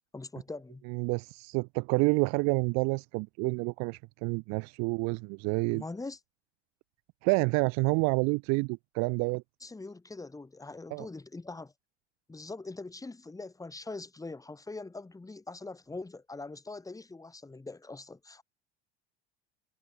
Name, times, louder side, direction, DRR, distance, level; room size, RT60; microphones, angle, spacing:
voice 1, 0.1-0.8 5.7-6.2 9.6-11.7 12.3-18.4, left 3 dB, 10° left, 2.0 m, -42 dB
voice 2, 0.9-5.8 7.2-9.4 10.9-11.1, right 32 dB, 50° right, 1.0 m, -28 dB
figure-of-eight pair, 70°, 34 cm